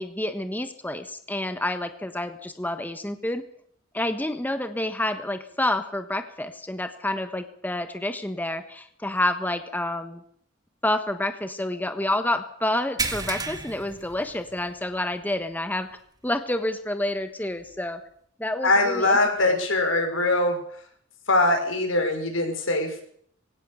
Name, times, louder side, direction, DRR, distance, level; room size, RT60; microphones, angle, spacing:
voice 1, 0.0-3.4 3.9-10.2 10.8-15.9 16.2-18.0 18.4-19.2, left 1 dB, 10° left, 8 dB, 1.2 m, -28 dB
sound 1, 13.0-14.9 15.2-15.4 15.9-16.0 17.7-17.8, right 3 dB, 20° right, 2.1 m, -32 dB
voice 2, 18.6-20.6 21.3-23.0, left 2 dB, 80° left, 4 dB, 6.1 m, -22 dB
22.5 x 17.0 x 6.9 m, 0.64 s
head